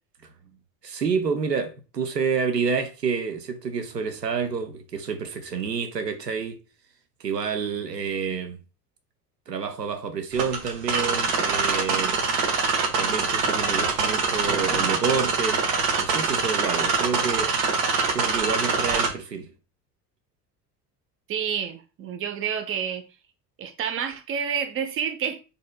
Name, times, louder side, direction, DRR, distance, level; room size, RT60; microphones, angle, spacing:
voice 1, 0.8-6.6 7.2-8.6 9.5-12.2 13.0-15.6 16.0-17.5 18.1-19.5, right 6 dB, 90° right, 0.6 m, -28 dB
sound 1, 10.3-19.1, right 4 dB, 60° right, 1.2 m, -24 dB
voice 2, 21.3-23.0 23.6-25.4, right 8 dB, 25° right, 0.6 m, -29 dB
4.0 x 3.3 x 2.2 m
figure-of-eight pair, 65°, 48 cm